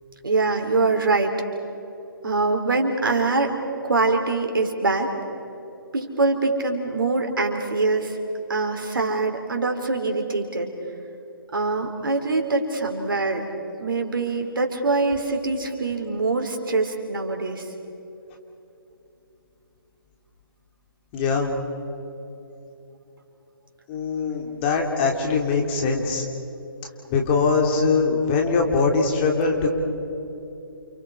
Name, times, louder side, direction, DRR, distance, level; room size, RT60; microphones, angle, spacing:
voice 1, 0.2-1.3 2.2-3.6 3.8-5.1 5.9-8.2 8.5-10.7 11.5-13.4 13.8-17.7, right 3 dB, 70° right, 3 dB, 4.1 m, -23 dB
voice 2, 21.1-21.5 23.9-26.2 27.1-29.7, left 4 dB, 30° left, 1 dB, 3.3 m, -22 dB
29.5 x 29.0 x 4.9 m, 3.0 s
figure-of-eight pair, 145°, 12 cm